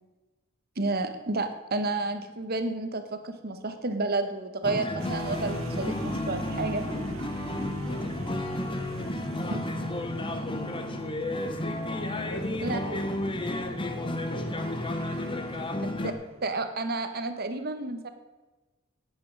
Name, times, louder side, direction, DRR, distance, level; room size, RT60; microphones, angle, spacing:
voice 1, 0.8-6.8 9.5-9.6 12.6-13.0 14.0-14.1 16.0-16.1 16.4-18.1, right 2 dB, 50° right, 8 dB, 1.1 m, -31 dB
sound 1, 4.6-16.1, left 1 dB, 25° left, 0.9 m, -32 dB
sound 2, 5.0-16.7, right 3 dB, 75° right, 0.6 m, -43 dB
voice 2, 7.7-8.4 9.0-9.4 11.3-11.8 12.1-13.3 13.7-16.2, left 2 dB, 75° left, 4 dB, 1.0 m, -44 dB
9.7 x 8.7 x 6.3 m, 1.2 s
head